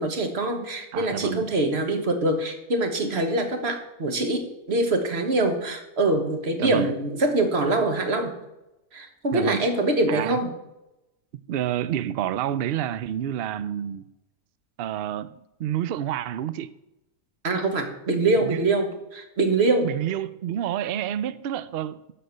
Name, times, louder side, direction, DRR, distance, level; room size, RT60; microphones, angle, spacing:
voice 1, 0.0-8.3 8.9-10.5 17.4-19.9, right 2 dB, 45° right, 5 dB, 1.6 m, -24 dB
voice 2, 0.9-1.5 6.6-6.9 9.3-9.7 10.1-10.4 11.5-14.0 14.8-16.7 18.4-18.7 19.8-22.1, right 11 dB, 85° right, 15 dB, 0.5 m, -29 dB
12.5 x 4.3 x 7.8 m, 0.93 s
omnidirectional pair, 1.6 m